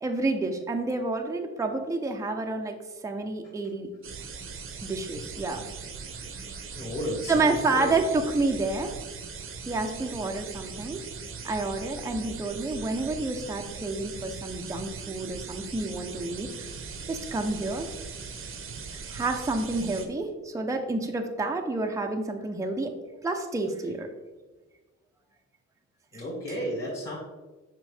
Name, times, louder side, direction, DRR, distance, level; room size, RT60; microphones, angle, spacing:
voice 1, 0.0-2.8 3.0-3.9 4.8-5.6 7.3-8.9 9.7-11.0 11.4-16.7 17.1-17.9 18.9-22.9 23.2-24.1 26.1-26.2, right 3 dB, 10° right, 3 dB, 0.6 m, -29 dB
sound 1, 4.0-20.1, right 5 dB, 45° right, 0.8 m, -40 dB
voice 2, 6.7-7.9 26.1-27.2, equal, 40° left, -5 dB, 1.9 m, -33 dB
6.2 x 4.6 x 3.4 m, 1.2 s
cardioid pair, 90°, 30 cm